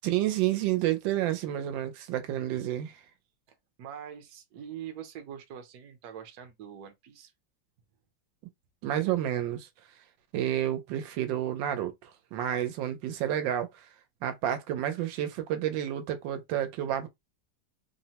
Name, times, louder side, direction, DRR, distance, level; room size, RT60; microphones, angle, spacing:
voice 1, 0.0-3.0 8.8-9.7 10.3-13.9 14.2-17.1, right 12 dB, 85° right, 1.3 m, -30 dB
voice 2, 3.8-7.3, right 9 dB, 65° right, 1.1 m, -43 dB
3.3 x 2.0 x 2.8 m
omnidirectional pair, 2.0 m